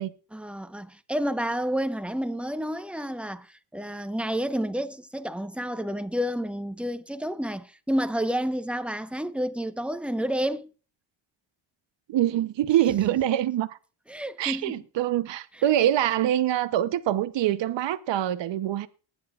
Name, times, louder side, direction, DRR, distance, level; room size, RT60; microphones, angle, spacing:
voice 1, 0.3-10.7 14.1-14.7 15.5-15.6, equal, ahead, 1.1 m, -30 dB
voice 2, 12.1-13.8 14.4-18.9, right 12 dB, 65° right, 1.0 m, -24 dB
20.0 x 9.9 x 2.5 m
cardioid pair, 80°, 47 cm